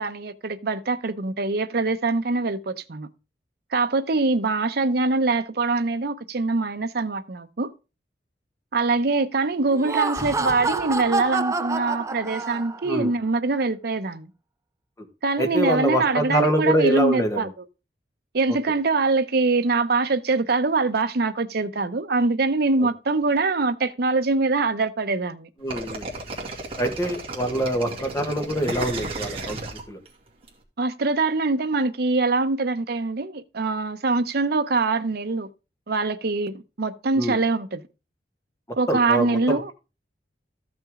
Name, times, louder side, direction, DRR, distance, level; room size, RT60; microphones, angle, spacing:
voice 1, 0.0-3.1 3.7-7.7 8.7-14.3 15.2-17.5 18.3-25.5 30.8-35.5 35.9-37.8 38.8-39.7, right 3 dB, 60° right, 0.7 m, -23 dB
Laughter, 9.7-13.0, right 3 dB, 20° right, 0.5 m, -27 dB
voice 2, 15.4-17.5 22.8-22.9 25.6-26.1 26.8-29.6 29.9-30.0 37.1-37.4 38.9-39.7, equal, 20° left, 1.5 m, -24 dB
sound 1, 25.7-30.5, right 2 dB, 35° right, 2.3 m, -33 dB
13.5 x 6.1 x 3.7 m
head